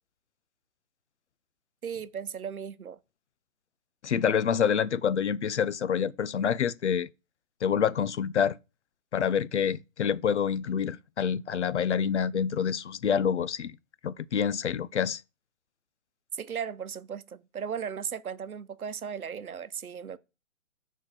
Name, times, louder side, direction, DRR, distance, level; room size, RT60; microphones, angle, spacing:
voice 1, 1.8-3.0 16.3-20.2, right 7 dB, 90° right, 0.9 m, -36 dB
voice 2, 4.0-7.1 7.6-8.6 9.1-13.7 14.0-15.2, left 7 dB, 55° left, 0.5 m, -27 dB
6.4 x 4.6 x 6.0 m
hypercardioid pair, 150°, 42 cm